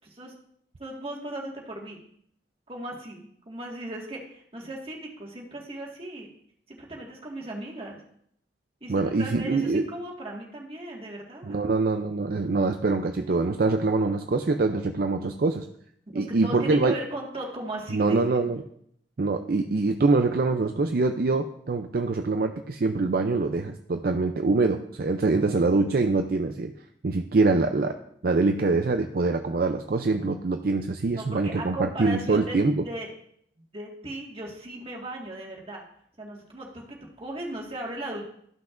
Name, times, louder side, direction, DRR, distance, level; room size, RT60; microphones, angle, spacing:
voice 1, 0.8-2.0 2.7-6.3 6.7-8.0 8.8-11.6 16.1-18.2 31.2-32.6 32.8-33.1 33.7-35.9 36.2-38.3, right 1 dB, 30° right, -2 dB, 1.8 m, -37 dB
voice 2, 8.9-9.9 11.5-15.7 16.1-16.9 17.9-18.6 19.2-26.7 27.0-27.9 28.2-32.8, right 3 dB, 55° right, 6 dB, 0.5 m, -24 dB
14.0 x 5.9 x 2.5 m, 0.69 s
head